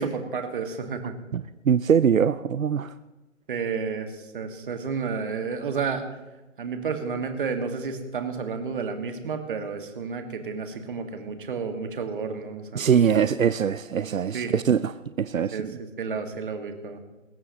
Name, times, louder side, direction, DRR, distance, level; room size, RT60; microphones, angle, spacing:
voice 1, 0.0-1.1 3.5-6.1 6.6-13.2 14.3-14.5 15.4-15.7 16.0-17.0, right 5 dB, 40° right, 5 dB, 1.9 m, -31 dB
voice 2, 1.3-2.9 12.7-15.7, right 7 dB, 80° right, 14 dB, 0.6 m, -23 dB
21.5 x 16.5 x 3.1 m, 1.1 s
figure-of-eight pair, 150°, 40 cm